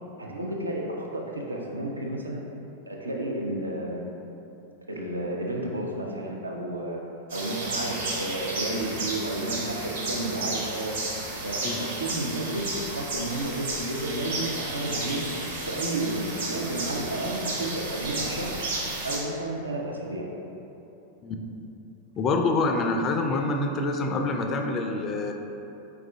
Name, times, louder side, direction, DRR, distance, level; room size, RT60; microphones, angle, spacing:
voice 1, 0.2-2.4 2.9-4.0 4.9-7.0 7.3-11.0 11.4-15.3 15.6-18.6 19.0-20.3, right 1 dB, 80° right, -1 dB, 0.5 m, -31 dB
sound 1, 7.3-19.2, right 2 dB, 65° right, 1.0 m, -33 dB
voice 2, 22.2-25.3, left 3 dB, 30° left, 4 dB, 0.3 m, -26 dB
4.7 x 2.4 x 3.6 m, 3.0 s
figure-of-eight pair, 90°, 0 cm